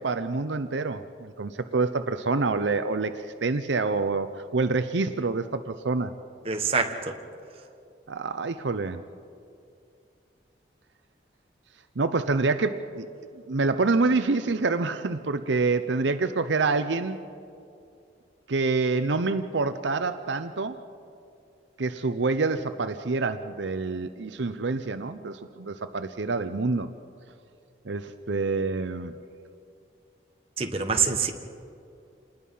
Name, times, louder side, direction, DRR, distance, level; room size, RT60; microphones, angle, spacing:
voice 1, 0.0-6.1 8.1-9.0 12.0-13.1 13.3-17.3 18.5-20.8 21.8-26.9 27.8-29.1, right 3 dB, 80° right, 10 dB, 0.7 m, -27 dB
voice 2, 6.4-7.1 30.6-31.3, right 5 dB, 30° right, 4 dB, 1.4 m, -25 dB
27.5 x 20.0 x 5.6 m, 2.5 s
head